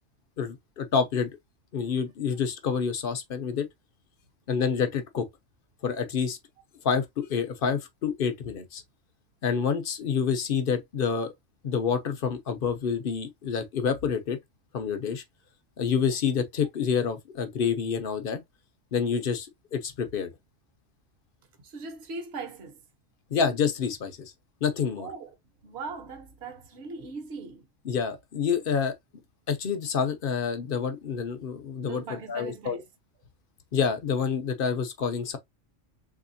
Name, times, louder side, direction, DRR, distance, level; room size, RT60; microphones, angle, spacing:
voice 1, 0.4-1.3 1.7-3.7 4.5-5.3 5.8-6.4 6.8-8.8 9.4-11.3 11.6-14.4 14.7-15.2 15.8-18.4 18.9-20.3 23.3-24.3 24.6-25.1 27.9-28.9 29.5-32.0 32.3-32.8 33.7-35.4, left 6 dB, 55° left, 0.7 m, -28 dB
voice 2, 21.6-22.8 25.0-27.7 31.8-32.9, right 4 dB, 60° right, 1.1 m, -40 dB
3.5 x 2.8 x 2.6 m
omnidirectional pair, 1.3 m